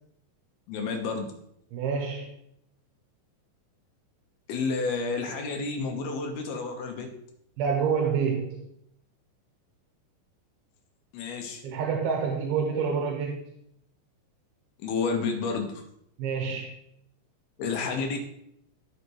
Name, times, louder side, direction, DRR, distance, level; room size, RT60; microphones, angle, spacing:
voice 1, 0.7-1.3 4.5-7.1 11.1-11.6 14.8-15.8 17.6-18.2, left 4 dB, 90° left, 3 dB, 3.1 m, -30 dB
voice 2, 1.7-2.3 7.6-8.7 11.6-13.5 16.2-16.7, right 6 dB, 80° right, 0 dB, 2.8 m, -28 dB
14.5 x 5.9 x 3.1 m, 0.74 s
omnidirectional pair, 4.4 m